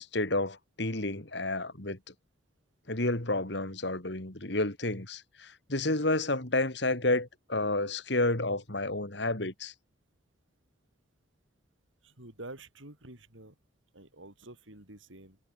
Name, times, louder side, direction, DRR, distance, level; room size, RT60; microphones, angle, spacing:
voice 1, 0.0-2.0 2.9-9.7, left 2 dB, 60° left, 2.9 m, -30 dB
voice 2, 12.0-13.6 13.9-15.4, right 2 dB, 85° right, 7.2 m, -48 dB
head